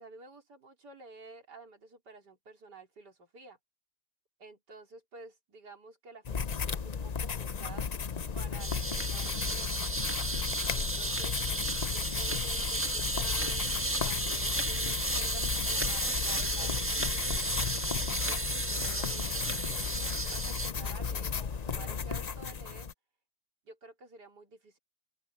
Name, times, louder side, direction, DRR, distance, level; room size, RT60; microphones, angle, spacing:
voice 1, 0.0-3.6 4.4-7.9 8.3-9.8 10.7-11.4 11.9-13.7 14.0-17.6 18.3-20.0 20.3-22.9 23.6-24.8, right 3 dB, 75° right, 4.2 m, -51 dB
sound 1, 6.3-22.9, left 6 dB, 85° left, 0.3 m, -35 dB
sound 2, 8.6-20.7, right 1 dB, 10° right, 1.2 m, -33 dB
open air
omnidirectional pair, 1.8 m